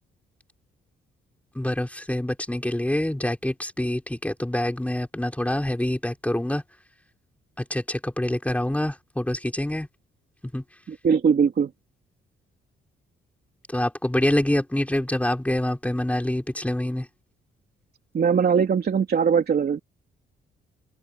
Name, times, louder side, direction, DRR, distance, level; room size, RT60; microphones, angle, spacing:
voice 1, 1.5-6.6 7.6-9.9 10.5-10.6 13.7-17.1, left 1 dB, 5° left, 6.1 m, -26 dB
voice 2, 10.9-11.7 18.1-19.8, right 6 dB, 50° right, 3.2 m, -21 dB
open air
cardioid pair, 90°, 21 cm